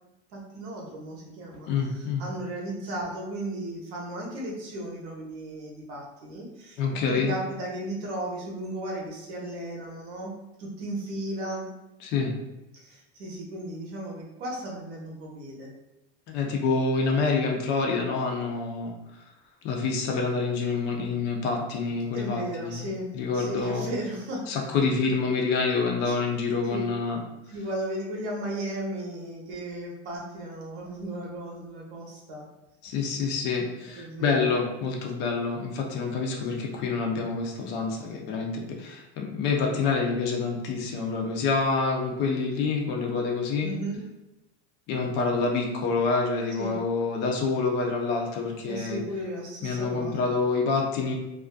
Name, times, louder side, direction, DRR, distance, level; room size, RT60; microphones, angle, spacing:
voice 1, 0.3-10.3 10.6-11.7 12.7-15.7 22.1-24.5 26.0-26.2 26.6-26.8 27.5-32.4 33.9-34.5 36.1-36.2 43.6-44.0 46.6-46.8 48.7-50.3, right 1 dB, 80° right, -2 dB, 1.0 m, -35 dB
voice 2, 1.7-2.2 6.8-7.3 12.0-12.3 16.3-18.9 19.6-22.8 23.1-23.9 24.5-27.2 32.8-43.7 44.9-49.0 49.6-51.1, left 4 dB, 35° left, 1 dB, 0.4 m, -27 dB
2.5 x 2.4 x 2.2 m, 0.95 s
cardioid pair, 165°, 33 cm